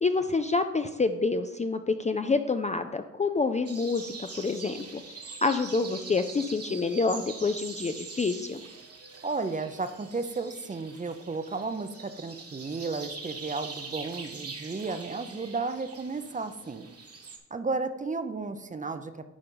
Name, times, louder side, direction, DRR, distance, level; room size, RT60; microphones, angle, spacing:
voice 1, 0.0-5.0 5.4-8.6, left 4 dB, 25° left, 8 dB, 0.4 m, -27 dB
sound 1, 3.7-17.4, right 4 dB, 50° right, 1.3 m, -43 dB
voice 2, 9.2-16.9 17.5-19.3, right 3 dB, 25° right, 9 dB, 0.6 m, -33 dB
9.9 x 3.9 x 5.5 m, 1.0 s
cardioid pair, 95°, 32 cm